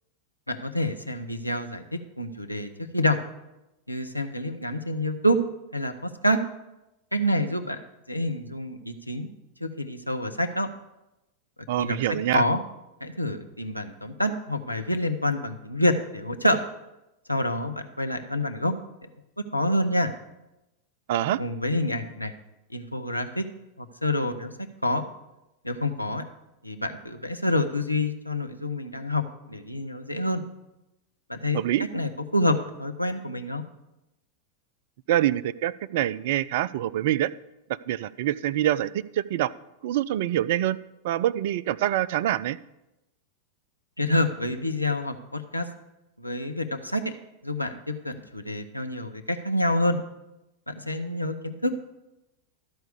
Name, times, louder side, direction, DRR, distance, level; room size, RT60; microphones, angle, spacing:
voice 1, 0.5-3.2 3.9-5.4 5.7-6.4 7.1-7.8 8.1-9.3 9.6-10.7 11.8-12.0 12.3-12.6 13.0-16.6 17.3-18.8 19.5-20.1 21.4-22.3 22.7-23.4 23.8-24.5 24.8-25.0 25.6-26.2 26.6-30.4 31.3-31.6 31.9-33.6 44.0-45.7 46.2-47.1 47.4-50.0 50.7-51.7, left 1 dB, 90° left, 7 dB, 0.7 m, -27 dB
voice 2, 11.7-12.4 21.1-21.4 31.5-31.9 35.1-37.3 37.7-39.5 39.8-40.8 41.0-42.6, right 13 dB, 55° right, 16 dB, 0.3 m, -25 dB
12.5 x 4.6 x 6.7 m, 0.95 s
figure-of-eight pair, 90°, 0 cm